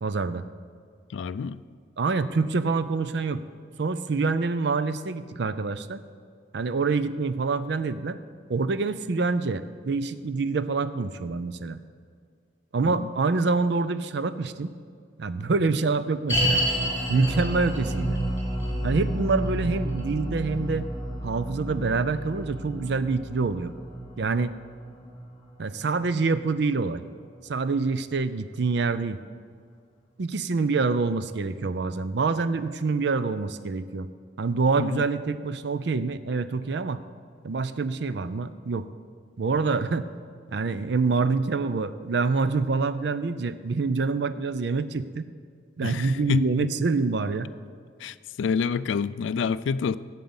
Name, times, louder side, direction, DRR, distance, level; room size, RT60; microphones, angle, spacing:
voice 1, 0.0-0.5 2.0-3.4 3.8-6.0 6.5-8.2 8.5-11.8 12.7-14.7 15.2-16.6 17.1-18.2 18.8-20.9 21.2-23.7 24.2-24.5 25.6-27.0 27.5-29.2 30.2-34.1 34.4-37.0 37.4-38.9 39.4-40.1 40.5-45.3 45.8-47.5, right 4 dB, 65° right, 13 dB, 0.5 m, -26 dB
voice 2, 1.1-1.6 12.8-13.1 34.8-35.0 45.8-46.7 48.0-50.0, left 5 dB, 85° left, 16 dB, 0.3 m, -27 dB
sound 1, 16.3-27.6 27.8-27.9 28.6-28.7, right 1 dB, 15° left, 2.6 m, -30 dB
9.3 x 7.6 x 7.1 m, 2.1 s
head